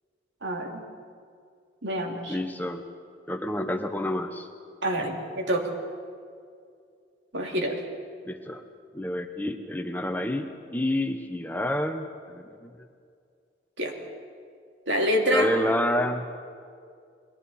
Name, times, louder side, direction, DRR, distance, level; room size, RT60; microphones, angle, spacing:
voice 1, 0.4-0.8 1.8-2.4 4.8-5.7 7.3-7.8 13.8-13.9 14.9-15.5, equal, 80° right, 1 dB, 2.8 m, -26 dB
voice 2, 2.3-2.8 3.3-4.5 8.3-8.6 8.9-12.1 12.3-12.7 15.3-16.2, left 1 dB, 10° left, 6 dB, 0.9 m, -29 dB
30.0 x 21.5 x 4.3 m, 2.3 s
head